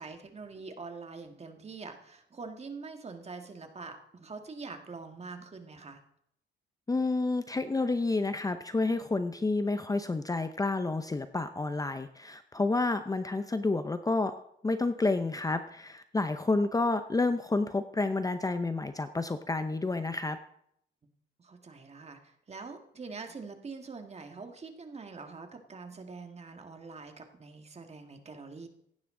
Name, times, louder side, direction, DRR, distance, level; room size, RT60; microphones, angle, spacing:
voice 1, 0.0-6.0 21.4-28.7, right 4 dB, 30° right, 5 dB, 1.8 m, -44 dB
voice 2, 6.9-20.4, left 3 dB, 15° left, 10 dB, 0.7 m, -30 dB
16.0 x 10.5 x 3.8 m, 0.73 s
cardioid pair, 90°, 20 cm